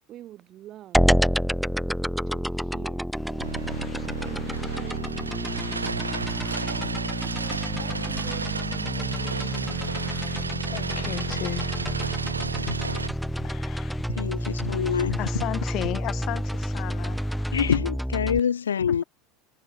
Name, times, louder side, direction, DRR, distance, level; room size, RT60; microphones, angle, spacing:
voice 1, 0.1-1.0 2.3-5.2 6.6-10.0, right 13 dB, 40° right, 5.3 m, -47 dB
sound 1, 0.9-18.4, equal, ahead, 0.4 m, -29 dB
sound 2, 3.1-17.7, left 5 dB, 20° left, 6.2 m, -50 dB
sound 3, 3.4-13.1, right 4 dB, 85° right, 0.6 m, -32 dB
voice 2, 10.4-11.7 12.5-12.7 13.4-14.0 15.2-17.3, left 17 dB, 45° left, 2.1 m, -35 dB
voice 3, 14.2-15.2 17.5-19.0, left 7 dB, 75° left, 0.5 m, -25 dB
figure-of-eight pair, 75°, 0 cm